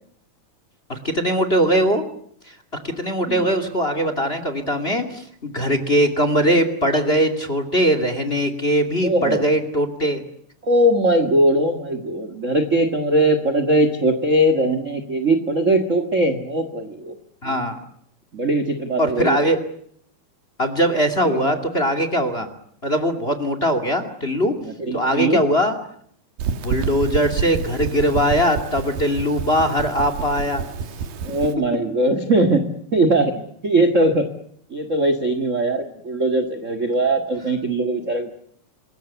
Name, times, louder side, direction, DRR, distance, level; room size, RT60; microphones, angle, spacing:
voice 1, 0.9-2.0 2.8-10.2 17.4-17.7 19.0-19.6 20.6-22.5 22.8-24.6 24.9-25.7 26.6-30.7, equal, 20° left, 10 dB, 2.1 m, -21 dB
voice 2, 9.0-9.4 10.6-17.1 17.4-17.5 18.3-19.4 21.2-21.5 24.8-25.4 31.2-34.3 34.7-38.3, right 1 dB, 35° right, 9 dB, 1.4 m, -20 dB
sound 1, 26.4-31.5, right 6 dB, 85° right, 3.5 m, -28 dB
27.0 x 21.5 x 8.2 m, 0.67 s
omnidirectional pair, 4.0 m